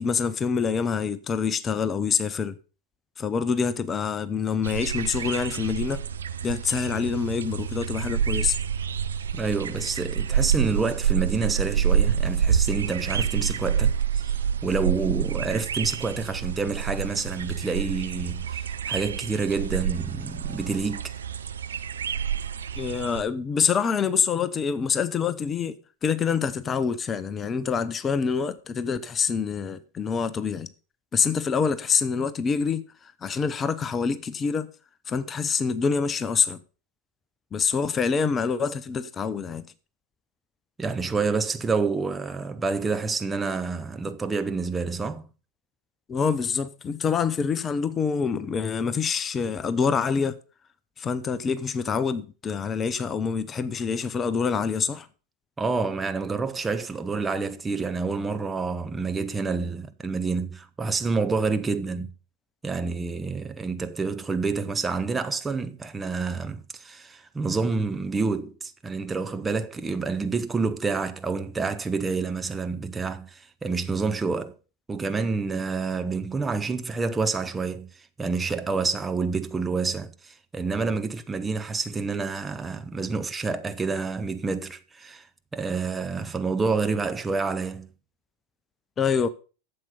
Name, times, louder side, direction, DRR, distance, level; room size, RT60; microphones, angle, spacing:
voice 1, 0.0-2.6 3.2-6.0 6.4-8.6 22.8-30.7 31.1-34.7 35.1-36.6 37.5-39.6 46.1-50.4 51.0-55.1 89.0-89.3, left 6 dB, 20° left, 0.7 m, -26 dB
sound 1, 4.6-23.2, right 8 dB, 70° right, 0.6 m, -28 dB
voice 2, 9.3-14.3 14.6-21.1 40.8-45.2 55.6-62.1 62.6-74.5 74.9-85.3 85.5-87.9, right 4 dB, 15° right, 0.8 m, -28 dB
12.0 x 7.6 x 5.6 m
figure-of-eight pair, 90°, 0 cm